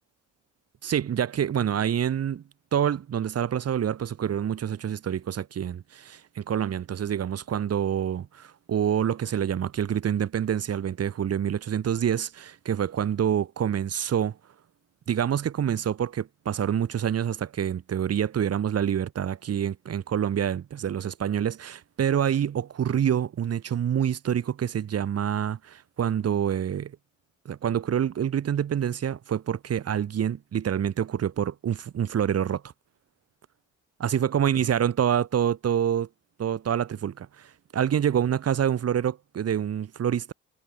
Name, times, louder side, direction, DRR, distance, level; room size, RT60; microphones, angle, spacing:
voice 1, 0.8-2.4 2.7-14.4 15.1-26.9 27.5-32.6 34.0-36.1 36.4-40.3, right 9 dB, 55° right, 2.0 m, -27 dB
cardioid pair, 90°, 30 cm